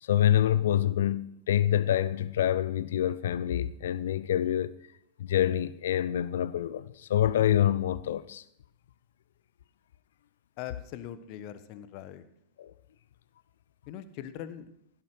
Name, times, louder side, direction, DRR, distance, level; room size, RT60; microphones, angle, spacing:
voice 1, 0.0-4.7 5.2-8.4 12.6-12.7, left 11 dB, 60° left, 0.5 m, -26 dB
voice 2, 10.6-12.2 13.9-14.7, left 11 dB, 45° left, 1.2 m, -41 dB
16.0 x 11.5 x 4.9 m
figure-of-eight pair, 90°, 0 cm